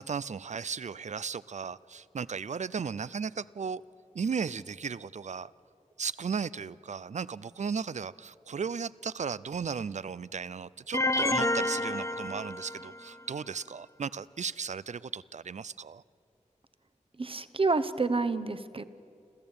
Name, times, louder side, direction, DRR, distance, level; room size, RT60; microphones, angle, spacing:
voice 1, 0.0-3.8 4.1-5.5 6.0-16.0, right 6 dB, 65° right, 19 dB, 0.5 m, -35 dB
sound 1, 10.9-13.0, left 1 dB, 25° left, 0.6 m, -29 dB
voice 2, 17.2-18.8, right 3 dB, 45° right, 11 dB, 1.0 m, -28 dB
26.5 x 14.5 x 8.7 m, 2.5 s
wide cardioid pair, 60°, 13 cm